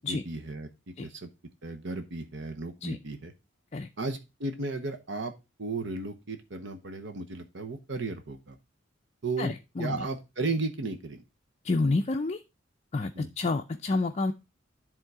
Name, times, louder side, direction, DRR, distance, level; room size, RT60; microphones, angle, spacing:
voice 1, 0.1-0.7 1.0-1.3 1.6-3.3 4.0-5.3 5.6-8.6 9.2-9.5 9.8-11.2 13.1-13.3, right 3 dB, 65° right, 7 dB, 0.9 m, -34 dB
voice 2, 9.4-10.1 11.6-12.4 12.9-14.3, left 3 dB, 35° left, 5 dB, 0.5 m, -29 dB
10.5 x 3.7 x 4.7 m, 0.26 s
head